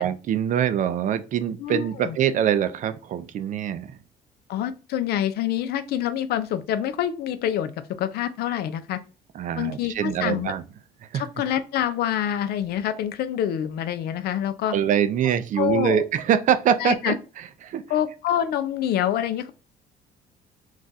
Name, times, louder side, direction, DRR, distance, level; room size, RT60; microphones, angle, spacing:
voice 1, 0.0-4.0 9.3-10.6 11.1-11.3 14.7-17.8, right 9 dB, 50° right, 11 dB, 0.4 m, -24 dB
voice 2, 1.6-2.2 4.5-7.7 8.0-9.0 9.6-10.5 11.1-14.7 15.6-16.0 16.8-17.1 17.9-19.5, left 10 dB, 70° left, 12 dB, 0.5 m, -26 dB
2.4 x 2.3 x 3.9 m, 0.34 s
cardioid pair, 110°, 17 cm